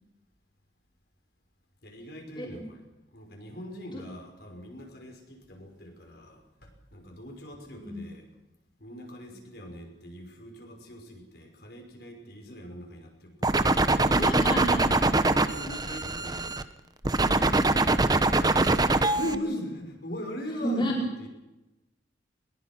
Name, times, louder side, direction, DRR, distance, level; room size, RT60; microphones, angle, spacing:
voice 1, 1.8-2.8 3.1-8.3 8.8-13.9 15.3-16.6 19.1-21.3, equal, 60° left, 2 dB, 5.7 m, -41 dB
voice 2, 7.8-8.1 13.8-15.1 20.6-21.0, equal, 25° left, -2 dB, 4.8 m, -32 dB
sound 1, 13.4-16.6 17.0-19.4, right 2 dB, 20° right, 0.9 m, -23 dB
21.5 x 20.5 x 6.1 m, 0.98 s
head